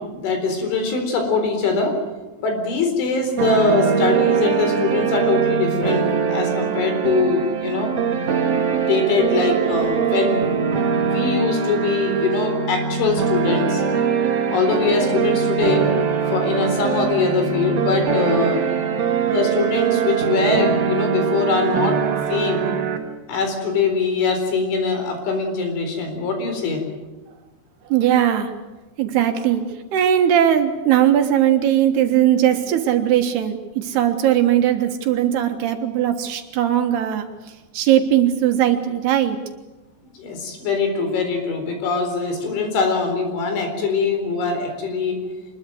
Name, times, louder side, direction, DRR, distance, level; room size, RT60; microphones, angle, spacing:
voice 1, 0.0-2.0 2.4-7.9 8.7-10.5 11.0-13.8 14.5-15.9 16.3-18.7 19.3-22.7 23.3-26.8 40.2-45.2, left 4 dB, 80° left, 5 dB, 6.4 m, -22 dB
sound 1, 3.4-23.0, right 7 dB, 45° right, 2.3 m, -22 dB
voice 2, 27.9-28.5 29.0-29.6 29.9-37.3 37.7-39.4, right 10 dB, 65° right, 5 dB, 3.2 m, -19 dB
25.0 x 21.0 x 7.8 m, 1.2 s
omnidirectional pair, 5.3 m